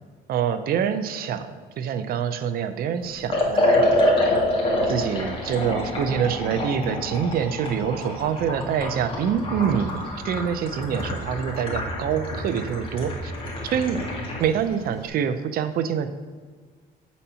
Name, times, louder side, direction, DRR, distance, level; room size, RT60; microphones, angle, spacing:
voice 1, 0.3-3.9 4.3-4.5 4.9-13.3 13.6-14.0 14.4-16.1, right 8 dB, 60° right, 10 dB, 0.6 m, -26 dB
Liquid, 3.3-14.5, left 1 dB, 30° left, 1.9 m, -26 dB
8.4 x 4.2 x 5.6 m, 1.5 s
cardioid pair, 110°, 17 cm